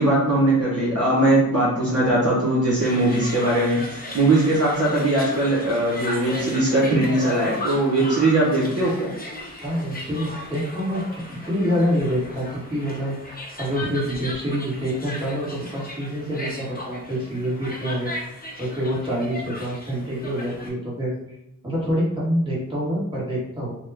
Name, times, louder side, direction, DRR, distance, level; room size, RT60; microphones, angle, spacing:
voice 1, 0.0-9.1, right 1 dB, 45° right, -7 dB, 1.0 m, -20 dB
sound 1, 2.8-20.7, left 1 dB, 25° left, 0.6 m, -36 dB
voice 2, 9.6-18.1 18.6-21.1 21.6-23.7, equal, 15° right, -8 dB, 1.4 m, -26 dB
2.8 x 2.2 x 3.4 m, 0.81 s
wide cardioid pair, 80°, 35 cm